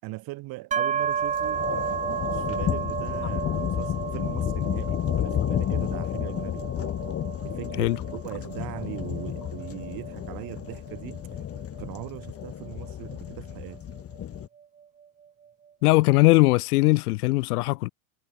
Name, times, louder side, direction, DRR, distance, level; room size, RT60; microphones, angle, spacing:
voice 1, 0.0-6.6 7.4-11.4 11.8-13.8, right 20 dB, 50° right, 5.1 m, -40 dB
sound 1, 0.7-14.4, right 7 dB, 15° right, 0.7 m, -33 dB
sound 2, 0.9-14.5, left 10 dB, 30° left, 2.8 m, -31 dB
voice 2, 15.8-17.9, left 22 dB, 80° left, 0.9 m, -20 dB
supercardioid pair, 125°, 45 cm